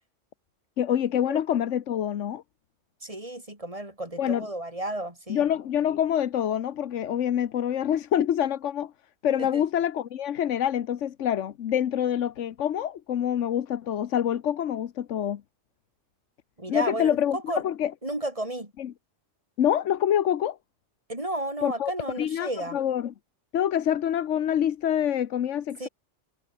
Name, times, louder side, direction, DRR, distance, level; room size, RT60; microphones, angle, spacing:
voice 1, 0.8-2.4 4.2-4.5 5.3-8.9 9.2-15.4 16.7-17.9 18.8-18.9 19.6-20.6 21.6-21.9 22.2-23.1 23.5-25.9, left 10 dB, 85° left, 1.2 m, -26 dB
voice 2, 3.0-5.4 9.4-9.6 16.6-17.6 18.0-18.7 21.1-22.8 25.8-25.9, right 1 dB, 30° right, 4.6 m, -33 dB
omnidirectional pair, 1.2 m